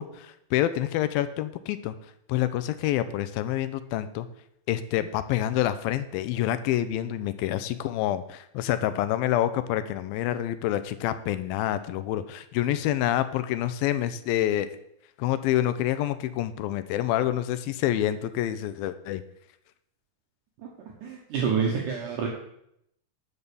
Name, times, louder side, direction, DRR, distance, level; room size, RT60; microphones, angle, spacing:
voice 1, 0.0-1.9 2.3-4.3 4.7-14.7 15.2-19.2, left 12 dB, 80° left, 12 dB, 2.3 m, -27 dB
voice 2, 21.0-22.3, right 6 dB, 65° right, -2 dB, 2.5 m, -27 dB
10.0 x 5.5 x 6.8 m, 0.75 s
omnidirectional pair, 4.3 m